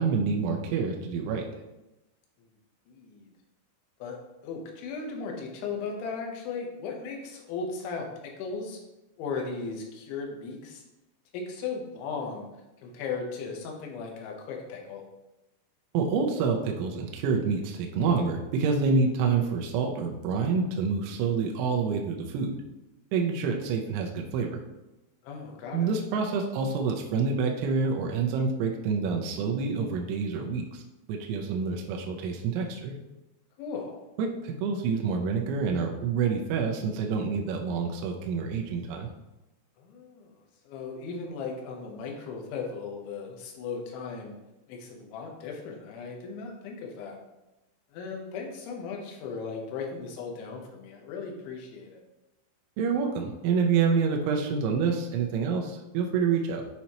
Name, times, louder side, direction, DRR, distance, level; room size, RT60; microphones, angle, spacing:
voice 1, 0.0-1.4 15.9-22.6 23.1-24.6 25.7-30.8 31.1-32.9 34.2-39.1 52.8-56.6, right 5 dB, 80° right, 2 dB, 2.9 m, -27 dB
voice 2, 2.9-3.3 4.0-8.1 8.4-8.8 9.2-10.8 11.3-12.5 12.8-15.0 25.2-25.9 33.6-34.0 39.8-40.3 40.7-44.4 44.7-47.2 47.9-52.0, left 4 dB, 80° left, 1 dB, 3.3 m, -37 dB
9.3 x 4.2 x 2.9 m, 0.99 s
omnidirectional pair, 5.6 m